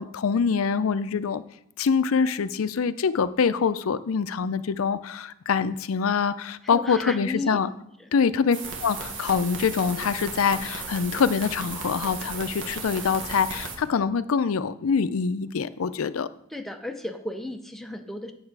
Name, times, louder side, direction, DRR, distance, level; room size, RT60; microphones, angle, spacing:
voice 1, 0.0-1.4 1.8-7.7 8.1-16.3, left 6 dB, 85° left, 15 dB, 0.5 m, -25 dB
voice 2, 6.6-7.6 8.0-8.1 16.5-18.3, left 1 dB, ahead, 4 dB, 0.6 m, -34 dB
sound 1, 8.5-13.8, right 4 dB, 65° right, 1.5 m, -35 dB
8.7 x 7.2 x 4.7 m, 0.76 s
head